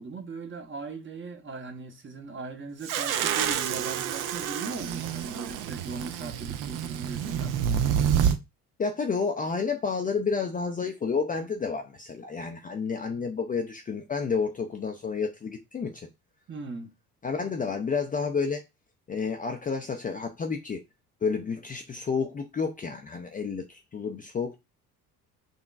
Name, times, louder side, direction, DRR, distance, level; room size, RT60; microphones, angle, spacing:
voice 1, 0.0-7.6 16.5-16.9, right 4 dB, 25° right, 1.0 m, -39 dB
sound 1, 2.8-8.4, right 9 dB, 45° right, 0.6 m, -28 dB
voice 2, 8.8-16.1 17.2-18.6 19.1-20.8 21.2-24.6, left 5 dB, 20° left, 0.5 m, -30 dB
6.3 x 3.0 x 2.4 m
figure-of-eight pair, 55°, 47 cm